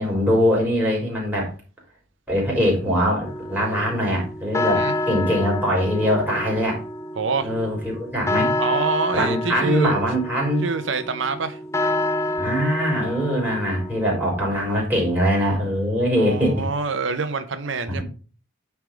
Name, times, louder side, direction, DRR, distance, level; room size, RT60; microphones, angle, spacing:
voice 1, 0.0-1.5 2.3-6.8 7.4-8.5 9.1-10.7 12.4-16.6, equal, 10° right, 3.4 m, -22 dB
sound 1, 3.2-14.4, left 1 dB, 15° left, 0.5 m, -28 dB
voice 2, 7.1-7.5 8.6-10.1 10.6-11.6 16.2-18.0, right 4 dB, 70° right, 0.7 m, -26 dB
9.3 x 3.5 x 5.0 m
head